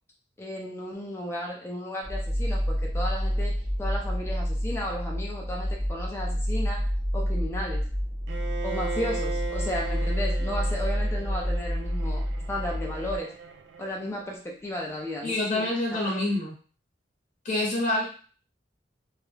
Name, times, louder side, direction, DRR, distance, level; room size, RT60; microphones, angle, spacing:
voice 1, 0.4-7.9 8.6-13.3 13.8-15.6 16.0-16.2, left 1 dB, 15° left, -2 dB, 0.4 m, -34 dB
sound 1, 2.0-13.2, equal, 30° right, 0.6 m, -29 dB
Bowed string instrument, 8.3-14.2, right 5 dB, 65° right, 0.3 m, -38 dB
voice 2, 15.2-16.5 17.4-18.0, left 2 dB, 40° left, -4 dB, 0.8 m, -26 dB
2.4 x 2.1 x 3.1 m, 0.40 s
head